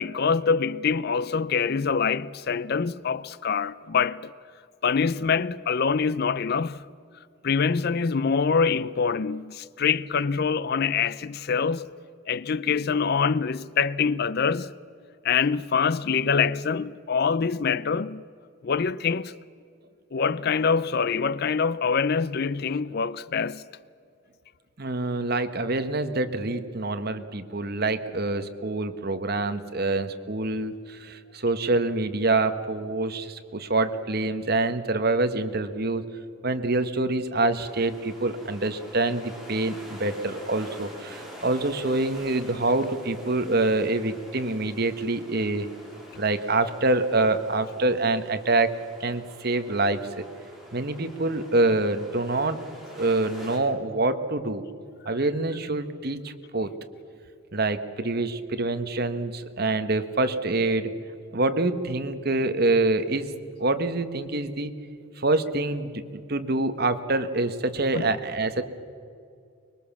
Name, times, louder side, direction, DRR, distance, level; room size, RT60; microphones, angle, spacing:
voice 1, 0.0-4.3 4.8-6.8 7.4-11.9 12.3-14.7 15.2-18.2 18.6-19.3 20.1-23.6 67.9-68.1, left 5 dB, 50° left, 0.5 m, -25 dB
voice 2, 24.8-36.1 36.4-45.7 46.2-50.2 50.7-52.6 52.9-54.6 55.0-56.7 57.5-60.9 61.3-63.3 63.6-64.7 65.2-68.6, right 2 dB, 50° right, 1.3 m, -26 dB
sound 1, 37.6-53.6, equal, ahead, 4.3 m, -46 dB
24.5 x 21.5 x 7.3 m
head